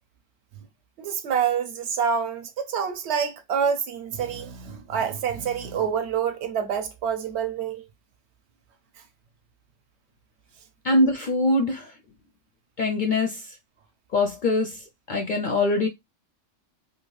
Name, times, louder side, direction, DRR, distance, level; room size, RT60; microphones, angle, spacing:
voice 1, 1.0-7.8, right 7 dB, 70° right, 0.8 m, -27 dB
voice 2, 10.8-11.9 12.8-13.6 14.1-15.9, left 2 dB, 65° left, 0.5 m, -23 dB
2.7 x 2.4 x 3.0 m
omnidirectional pair, 1.3 m